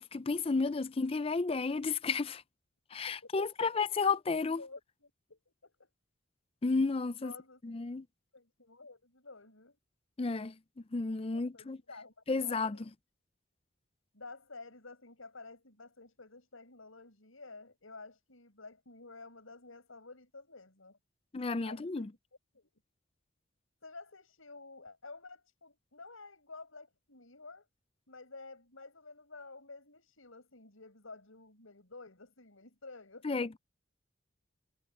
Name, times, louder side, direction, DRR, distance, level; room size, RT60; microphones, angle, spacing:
voice 1, 0.0-2.4 2.9-4.6 6.6-7.3 7.6-8.1 10.2-10.6 10.9-11.8 12.3-12.8 21.3-22.1 33.2-33.6, left 4 dB, 30° left, 0.4 m, -32 dB
voice 2, 3.1-4.2 4.6-5.9 7.2-7.6 8.3-9.8 11.3-12.1 12.4-12.9 14.1-21.0 21.6-22.1 22.5-22.7 23.8-27.7 28.1-33.4, left 3 dB, 80° left, 5.7 m, -52 dB
head